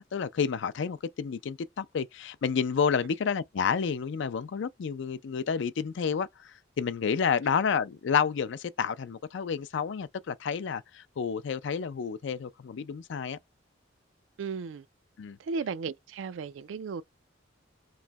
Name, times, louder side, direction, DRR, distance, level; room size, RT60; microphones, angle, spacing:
voice 1, 0.0-13.4 15.2-15.4, left 6 dB, 70° left, 0.4 m, -30 dB
voice 2, 14.4-14.9 15.4-17.0, right 5 dB, 85° right, 0.4 m, -35 dB
3.1 x 2.6 x 2.3 m
head